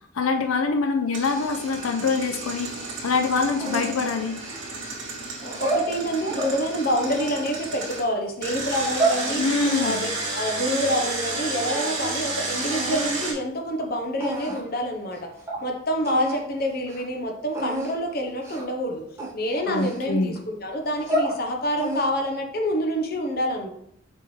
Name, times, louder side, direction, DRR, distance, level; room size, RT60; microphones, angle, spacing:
voice 1, 0.1-4.4 9.4-10.1 19.7-20.4, left 4 dB, 90° left, 6 dB, 0.6 m, -25 dB
Engine, 1.1-8.0 8.4-13.3, right 3 dB, 60° right, 2.4 m, -32 dB
sound 1, 3.6-4.9 5.4-6.5 7.0-8.1 8.7-9.2 9.6-11.4 11.6-12.3 12.7-13.1 13.8-13.9 14.2-14.7 15.1-15.2 15.5-15.6 16.0-16.4 16.8-17.0 17.5-17.9 18.4-18.7 19.2-20.4 20.8-21.4 21.8-22.3, right 2 dB, 15° right, 1.5 m, -30 dB
voice 2, 5.4-9.4 9.8-10.1 10.3-15.3 15.6-19.0 19.3-23.7, equal, 45° left, 3 dB, 0.9 m, -27 dB
6.9 x 4.6 x 3.2 m, 0.70 s
head